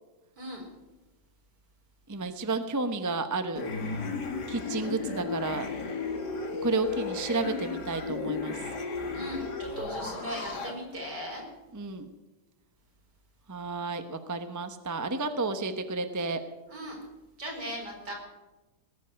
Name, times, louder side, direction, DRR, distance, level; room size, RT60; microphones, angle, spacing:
voice 1, 0.4-0.7 9.1-11.4 16.7-17.0 17.4-18.1, equal, 50° right, -1 dB, 5.4 m, -38 dB
voice 2, 2.1-3.6 4.5-5.7 6.6-8.5 11.7-12.1 13.5-16.4, right 3 dB, 20° right, 8 dB, 0.4 m, -31 dB
sound 1, 3.6-10.7, left 4 dB, 55° left, 2.4 m, -34 dB
19.0 x 8.3 x 9.0 m, 1.1 s
omnidirectional pair, 2.3 m